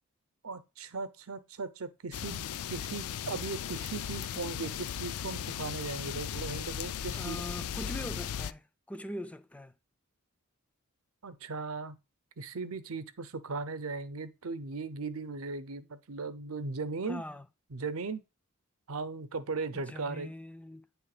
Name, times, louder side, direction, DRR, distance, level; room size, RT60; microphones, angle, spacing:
voice 1, 0.4-2.4 2.7-7.4 11.2-12.0 12.4-17.2 17.7-18.2 18.9-20.3, right 4 dB, 70° right, 0.7 m, -38 dB
sound 1, 2.1-8.5, left 9 dB, 80° left, 0.4 m, -37 dB
voice 2, 7.1-9.7 17.1-17.5 19.7-20.9, left 1 dB, 5° left, 0.3 m, -42 dB
9.5 x 3.3 x 4.9 m
head